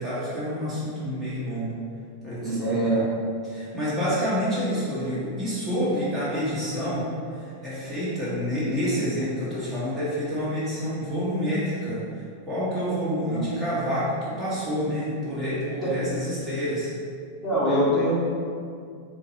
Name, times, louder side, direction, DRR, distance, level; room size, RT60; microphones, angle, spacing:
voice 1, 0.0-1.7 2.2-3.0 3.4-16.9, equal, 10° right, -11 dB, 1.0 m, -28 dB
voice 2, 2.4-3.1 13.2-13.5 15.8-16.1 17.4-18.1, right 1 dB, 15° left, -13 dB, 1.4 m, -24 dB
3.7 x 2.7 x 2.8 m, 2.3 s
figure-of-eight pair, 90°, 0 cm